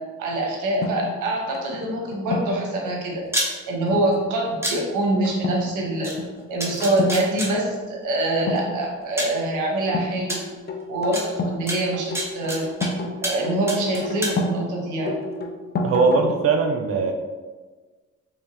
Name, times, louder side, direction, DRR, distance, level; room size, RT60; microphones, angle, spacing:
voice 1, 0.2-3.2 3.7-6.1 6.5-10.4 10.9-12.7 13.2-15.1, right 1 dB, 80° right, -1 dB, 1.0 m, -25 dB
sound 1, 0.8-2.7 3.9-4.2 4.5-4.8 5.2-5.6 5.9-6.3 6.8-7.2 8.4-9.1 9.9-11.6 11.9-14.6 15.1-16.5, left 2 dB, 35° left, 0.5 m, -29 dB
sound 2, 3.2-3.5 4.6-4.7 6.0-6.1 6.6-7.5 8.6-8.7 9.2-9.4 10.3-10.4 11.1-11.2 11.7-12.9 13.2-13.4 13.7-14.3, right 1 dB, 10° right, 0.8 m, -27 dB
voice 2, 15.8-17.1, right 4 dB, 50° right, 4 dB, 0.4 m, -20 dB
3.5 x 3.0 x 2.7 m, 1.4 s
cardioid pair, 90°, 30 cm